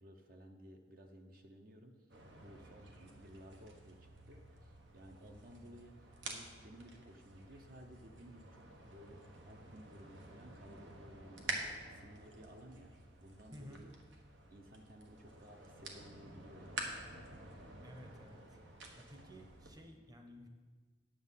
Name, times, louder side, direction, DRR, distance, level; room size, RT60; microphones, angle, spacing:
voice 1, 0.0-6.0 6.2-12.9 13.2-13.9 14.5-16.9 19.1-19.5, equal, 50° right, 4 dB, 0.8 m, -57 dB
sound 1, 2.1-19.7, right 2 dB, 85° right, 1.4 m, -49 dB
voice 2, 13.5-13.9 17.8-18.6 18.9-20.5, equal, 20° right, 4 dB, 0.9 m, -54 dB
10.0 x 7.4 x 5.6 m, 1.4 s
head